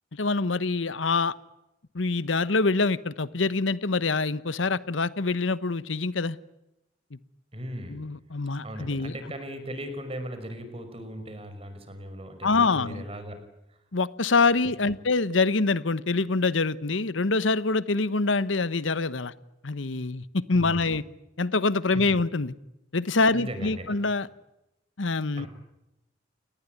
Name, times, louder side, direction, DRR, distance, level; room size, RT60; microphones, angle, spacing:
voice 1, 0.1-1.3 1.9-6.4 7.9-9.1 12.4-13.0 13.9-19.3 19.6-21.0 21.4-22.5 22.9-24.3 25.0-25.5, left 3 dB, 85° left, 1.1 m, -25 dB
voice 2, 7.5-8.0 8.6-13.4 13.7-13.8 20.6-20.9 21.9-22.1 23.3-24.0 25.4-25.5, equal, 30° right, 5.6 m, -38 dB
29.5 x 20.0 x 9.5 m
head